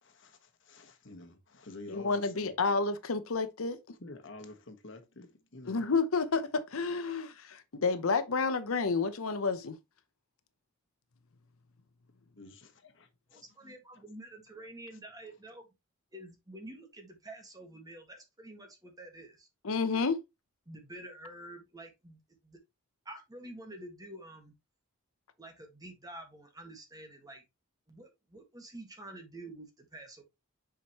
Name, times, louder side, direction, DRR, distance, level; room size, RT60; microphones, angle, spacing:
voice 1, 0.0-2.5 4.0-5.8 12.4-14.0 14.9-15.0, left 2 dB, 60° left, 1.3 m, -50 dB
voice 2, 1.9-3.8 5.7-9.8 19.6-20.2, left 4 dB, 85° left, 0.8 m, -30 dB
voice 3, 13.3-15.7 16.1-19.5 20.7-22.6 23.0-24.5 25.4-27.4 27.9-30.2, right 1 dB, 20° right, 1.6 m, -48 dB
7.0 x 5.0 x 3.0 m
head